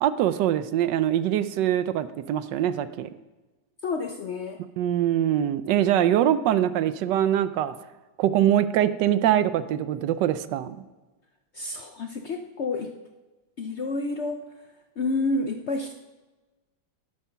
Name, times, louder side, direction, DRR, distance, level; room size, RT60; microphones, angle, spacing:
voice 1, 0.0-3.1 4.8-7.7 8.2-10.8, right 11 dB, 80° right, 13 dB, 1.3 m, -23 dB
voice 2, 3.8-4.6 11.5-12.9 13.6-14.7 15.0-15.9, left 3 dB, 60° left, 5 dB, 0.7 m, -29 dB
11.5 x 8.2 x 5.7 m, 1.2 s
omnidirectional pair, 1.9 m